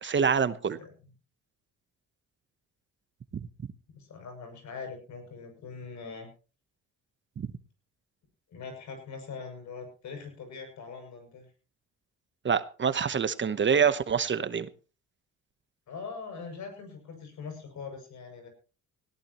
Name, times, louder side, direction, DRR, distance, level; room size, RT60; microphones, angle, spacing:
voice 1, 0.0-0.8 7.4-7.5 12.4-14.7, right 6 dB, 40° right, 1.0 m, -26 dB
voice 2, 3.9-6.3 8.5-11.5 15.9-18.5, left 5 dB, 70° left, 7.1 m, -42 dB
19.0 x 17.0 x 3.1 m
cardioid pair, 90°, 30 cm